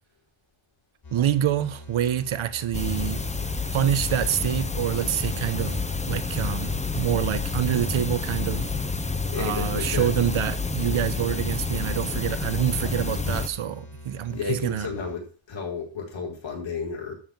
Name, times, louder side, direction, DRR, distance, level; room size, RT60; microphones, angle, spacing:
sound 1, 1.0-15.2, left 1 dB, 50° left, 5.0 m, -44 dB
voice 1, 1.1-3.2 3.7-8.7 9.4-14.9, right 10 dB, 90° right, 1.1 m, -26 dB
sound 2, 2.7-13.5, left 4 dB, 15° left, 0.9 m, -29 dB
voice 2, 9.3-10.1 14.3-17.1, left 5 dB, 70° left, 5.0 m, -32 dB
12.5 x 5.8 x 7.3 m
wide cardioid pair, 110°, 47 cm